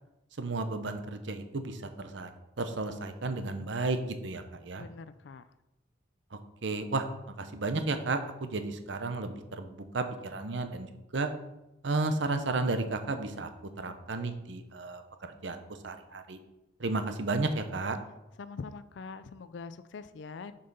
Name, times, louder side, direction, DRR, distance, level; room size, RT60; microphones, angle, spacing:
voice 1, 0.4-2.3 2.6-4.8 6.3-11.3 11.8-13.5 13.8-16.4 16.8-18.0, right 3 dB, 65° right, 8 dB, 0.8 m, -33 dB
voice 2, 4.8-5.4 18.4-20.6, left 4 dB, 65° left, 13 dB, 0.4 m, -43 dB
6.7 x 5.5 x 5.4 m, 0.95 s
head